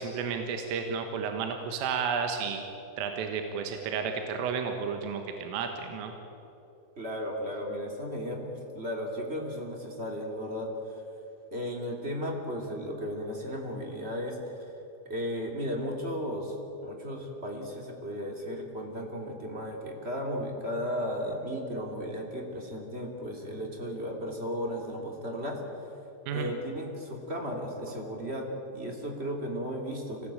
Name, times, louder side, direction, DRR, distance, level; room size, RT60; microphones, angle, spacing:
voice 1, 0.0-2.6 3.0-6.1 26.3-26.5, right 6 dB, 80° right, 5 dB, 4.0 m, -32 dB
voice 2, 6.9-11.0 11.5-14.8 15.0-16.6 16.8-26.0 26.3-30.3, equal, 20° right, 1 dB, 1.7 m, -35 dB
25.0 x 19.0 x 8.9 m, 3.0 s
omnidirectional pair, 5.9 m